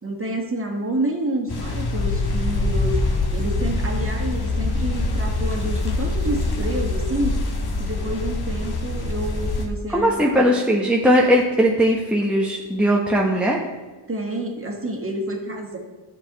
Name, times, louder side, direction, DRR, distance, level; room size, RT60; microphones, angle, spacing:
voice 1, 0.0-3.0 3.3-7.4 7.8-10.4 14.1-15.8, right 1 dB, 25° right, 0 dB, 2.1 m, -28 dB
sound 1, 1.5-9.7, left 2 dB, 55° left, 1.8 m, -24 dB
voice 2, 9.9-13.6, equal, ahead, -2 dB, 1.2 m, -19 dB
10.5 x 6.8 x 4.1 m, 1.2 s
cardioid pair, 55°, 47 cm